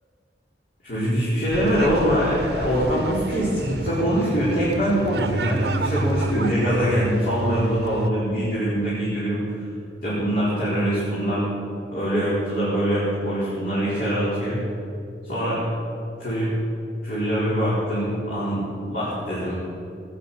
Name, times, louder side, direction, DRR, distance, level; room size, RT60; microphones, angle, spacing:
voice 1, 0.8-9.4 10.0-11.5 11.9-14.6 15.2-15.6 16.2-16.5 17.0-19.6, equal, 50° left, -9 dB, 4.3 m, -23 dB
sound 1, 1.5-8.1, right 2 dB, 65° right, 0.9 m, -30 dB
18.5 x 9.8 x 6.9 m, 2.6 s
head